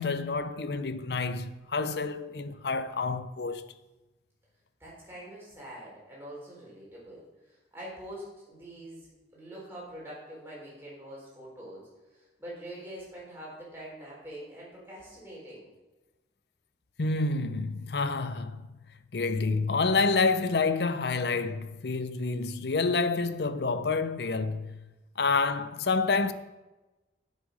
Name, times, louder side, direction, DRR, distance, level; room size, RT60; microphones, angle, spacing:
voice 1, 0.0-3.7 17.0-18.7 19.1-24.9 25.2-26.3, left 4 dB, 65° left, 0.6 m, -28 dB
voice 2, 4.8-15.7, right 1 dB, 15° right, 4.0 m, -45 dB
9.0 x 7.5 x 5.2 m
head